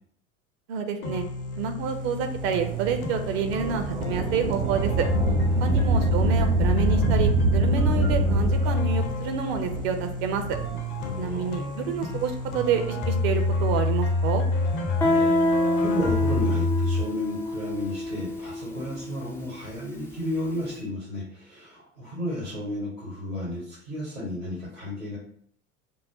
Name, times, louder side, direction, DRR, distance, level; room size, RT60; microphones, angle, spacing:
voice 1, 0.7-1.2 1.6-5.1 5.6-10.6 11.2-14.4, right 6 dB, 50° right, 6 dB, 0.6 m, -28 dB
sound 1, 1.0-17.0, left 2 dB, 45° left, 0.7 m, -27 dB
Thunder / Rain, 2.3-11.2 12.0-12.1 13.0-14.3 15.8-16.6, right 4 dB, 70° right, 1.1 m, -28 dB
voice 2, 5.5-5.9 11.0-11.5 15.0-15.5 15.8-25.2, left 1 dB, 90° right, -7 dB, 1.6 m, -33 dB
Guitar, 15.0-20.5, left 2 dB, 5° left, 0.3 m, -27 dB
3.9 x 2.1 x 3.8 m, 0.65 s
figure-of-eight pair, 75°, 40 cm